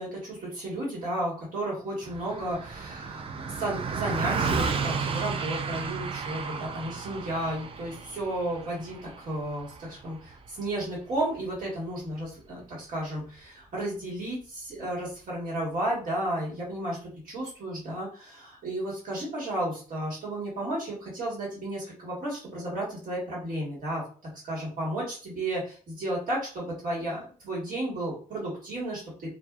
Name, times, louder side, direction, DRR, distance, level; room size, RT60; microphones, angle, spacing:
voice 1, 0.0-17.0 17.2-24.0 24.4-29.3, right 1 dB, 65° right, -5 dB, 1.4 m, -33 dB
Car passing by, 2.0-11.6, right 5 dB, 35° right, 0.3 m, -33 dB
2.7 x 2.3 x 2.3 m, 0.40 s
cardioid pair, 120°, 15 cm